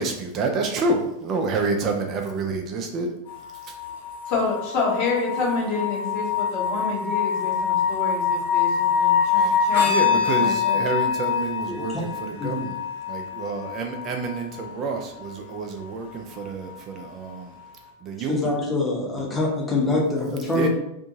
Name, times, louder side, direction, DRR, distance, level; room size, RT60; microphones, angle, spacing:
voice 1, 0.0-3.1 3.6-3.7 9.3-12.8 13.1-17.5 18.0-18.5 20.5-20.7, right 3 dB, 30° right, 3 dB, 0.4 m, -28 dB
sound 1, 3.3-15.3 16.7-16.8, left 7 dB, 60° left, 1.2 m, -25 dB
voice 2, 4.3-10.8, left 4 dB, 45° left, -2 dB, 0.9 m, -28 dB
voice 3, 11.7-12.0 12.4-12.6 18.3-20.7, left 2 dB, 15° left, -2 dB, 0.8 m, -25 dB
2.6 x 2.5 x 2.7 m, 0.82 s
figure-of-eight pair, 90°, 0 cm